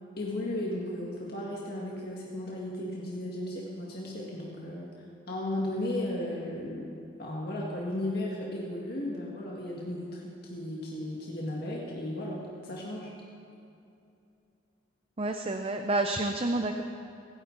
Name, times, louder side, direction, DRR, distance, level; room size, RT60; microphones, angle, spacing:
voice 1, 0.2-4.9 5.3-6.9 7.2-13.1, left 1 dB, 50° left, -4 dB, 1.9 m, -35 dB
voice 2, 15.2-16.8, right 2 dB, 30° right, 5 dB, 0.6 m, -29 dB
27.0 x 10.5 x 4.0 m, 2.6 s
head